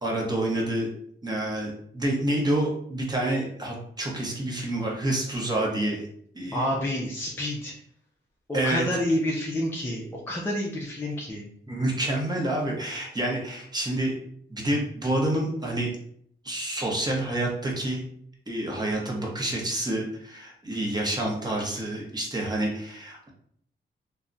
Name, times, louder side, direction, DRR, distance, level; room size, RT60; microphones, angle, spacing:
voice 1, 0.0-0.9 1.2-6.0 6.3-6.7 8.5-8.8 11.7-14.1 14.5-15.9 16.4-18.0 18.5-23.3, right 1 dB, 20° right, -2 dB, 0.7 m, -28 dB
voice 2, 6.5-7.7 8.5-11.5, left 1 dB, 10° left, -3 dB, 0.4 m, -29 dB
2.2 x 2.0 x 3.7 m, 0.66 s
wide cardioid pair, 130°, 20 cm